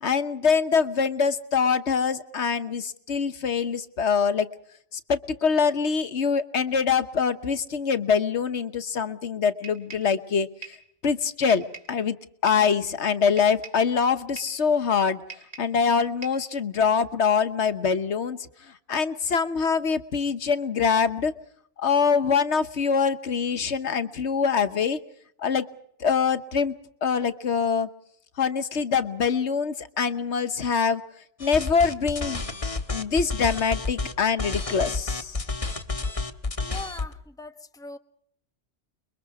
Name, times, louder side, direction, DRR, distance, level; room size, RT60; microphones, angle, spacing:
voice 1, 0.0-4.5 4.9-10.8 11.0-12.2 12.4-15.2 15.6-21.3 21.8-25.0 25.4-25.7 26.0-26.7 27.0-27.9 28.4-31.0 31.4-32.4 32.9-35.5, left 6 dB, 70° left, 11 dB, 1.4 m, -24 dB
sound 1, 9.6-10.2 10.6-10.9 11.5-12.0 12.5-12.7 13.4-13.9 14.4-14.6 15.3-15.8 16.2-16.5, right 4 dB, 65° right, 3.5 m, -43 dB
sound 2, 31.4-34.1 34.4-37.1, left 3 dB, 30° left, 1.5 m, -30 dB
voice 2, 36.6-38.0, left 3 dB, 5° left, 8 dB, 1.1 m, -40 dB
30.0 x 22.5 x 4.8 m, 0.67 s
omnidirectional pair, 1.2 m